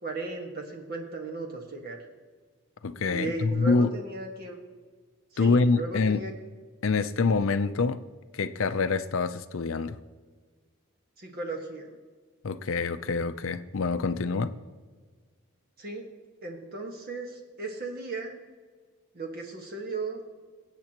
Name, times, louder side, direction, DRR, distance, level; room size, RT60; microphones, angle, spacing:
voice 1, 0.0-2.0 3.0-4.6 5.3-6.3 11.2-12.0 15.8-16.1 16.4-18.4 19.1-20.2, right 3 dB, 45° right, 1 dB, 1.6 m, -36 dB
voice 2, 2.8-3.9 5.4-6.2 6.8-8.0 8.3-10.0 12.4-14.5, left 4 dB, 65° left, 11 dB, 0.5 m, -26 dB
23.0 x 8.2 x 3.0 m, 1.5 s
head